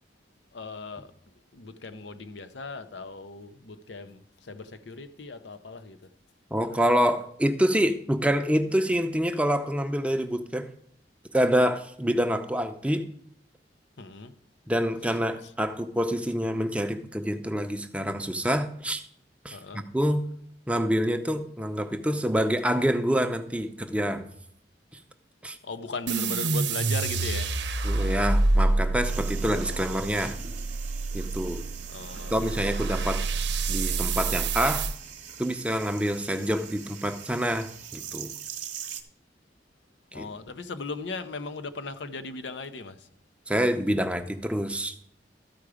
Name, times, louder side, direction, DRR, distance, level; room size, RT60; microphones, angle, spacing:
voice 1, 0.5-1.1 1.5-6.1 14.0-14.3 19.5-19.8 25.6-27.5 31.9-32.4 34.1-34.2 40.1-43.1, left 3 dB, 80° left, 0.7 m, -38 dB
voice 2, 6.5-10.7 11.3-13.1 14.7-19.0 19.4-20.3 20.7-24.2 25.4-25.6 27.8-30.4 31.1-31.6 32.3-33.3 33.7-34.9 35.4-38.3 40.1-40.3 43.5-44.9, equal, 5° right, 0.6 m, -26 dB
sound 1, 26.1-35.0, right 3 dB, 75° right, 0.7 m, -27 dB
sound 2, 29.0-39.0, right 8 dB, 45° right, 0.9 m, -42 dB
13.0 x 4.8 x 4.9 m
head